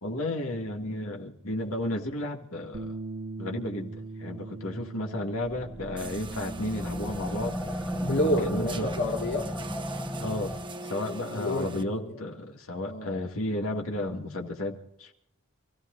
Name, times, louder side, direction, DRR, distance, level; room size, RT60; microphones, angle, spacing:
voice 1, 0.0-2.9 3.4-3.9 4.2-7.5 8.4-8.9 10.2-10.6 10.8-15.1, left 1 dB, 75° left, 2.3 m, -33 dB
Bass guitar, 2.7-9.0, right 3 dB, 60° right, 1.3 m, -42 dB
sound 1, 5.4-11.0, equal, 5° left, 1.2 m, -36 dB
sound 2, 6.0-11.8, right 1 dB, 20° right, 1.1 m, -39 dB
voice 2, 8.0-9.5 11.3-12.2 12.8-13.2, left 1 dB, 55° left, 2.1 m, -29 dB
28.0 x 16.0 x 2.6 m
head